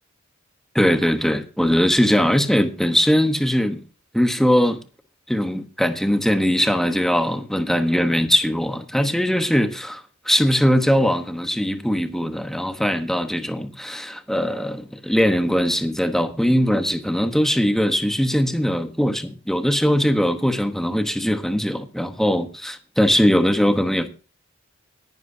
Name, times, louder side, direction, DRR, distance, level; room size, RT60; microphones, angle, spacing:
voice 1, 0.7-3.8 4.1-4.8 5.3-10.0 10.3-24.1, equal, ahead, 1.1 m, -20 dB
18.0 x 11.0 x 2.8 m
head